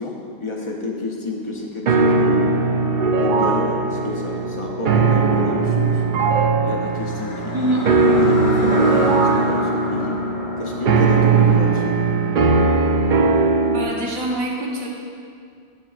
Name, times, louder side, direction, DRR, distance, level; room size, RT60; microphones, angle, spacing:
voice 1, 0.0-2.5 3.2-6.0 6.6-10.2 10.6-12.0, left 3 dB, 35° left, -1 dB, 0.5 m, -29 dB
sound 1, 1.9-13.9, right 4 dB, 65° right, 0.4 m, -19 dB
sound 2, 6.7-12.9, left 2 dB, 60° left, 1.0 m, -33 dB
voice 2, 13.7-14.9, right 1 dB, 90° right, -3 dB, 1.6 m, -25 dB
9.6 x 7.3 x 2.4 m, 2.2 s
omnidirectional pair, 1.4 m